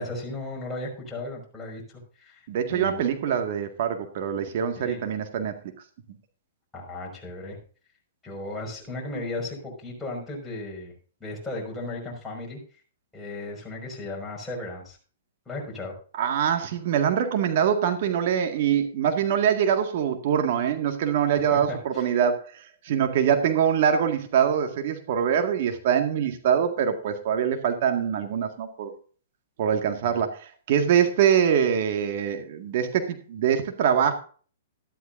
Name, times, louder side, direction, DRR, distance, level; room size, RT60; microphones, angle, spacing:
voice 1, 0.0-2.4 2.7-3.0 4.7-5.0 6.7-7.6 8.2-10.9 11.2-12.6 13.1-15.0 15.5-15.9 21.5-22.1 30.0-30.3, left 2 dB, 10° left, -2 dB, 5.4 m, -35 dB
voice 2, 2.5-5.6 16.2-22.4 22.8-28.9 29.6-34.1, right 8 dB, 55° right, 6 dB, 1.8 m, -24 dB
13.0 x 12.5 x 2.6 m, 0.41 s
hypercardioid pair, 130°, 0 cm